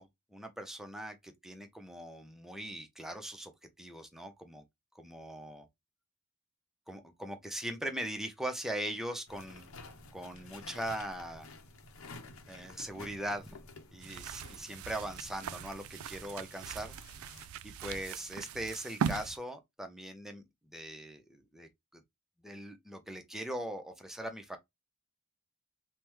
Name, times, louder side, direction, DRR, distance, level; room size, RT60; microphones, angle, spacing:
voice 1, 0.0-3.5 3.8-4.6 4.9-5.7 6.9-9.7 10.1-11.5 12.5-13.6 13.9-17.0 17.6-22.0 22.4-24.6, right 1 dB, ahead, 0.5 m, -40 dB
sound 1, 9.3-17.5, left 2 dB, 75° left, 0.7 m, -52 dB
sound 2, 14.0-19.4, right 7 dB, 80° right, 0.3 m, -40 dB
3.4 x 2.1 x 3.0 m
head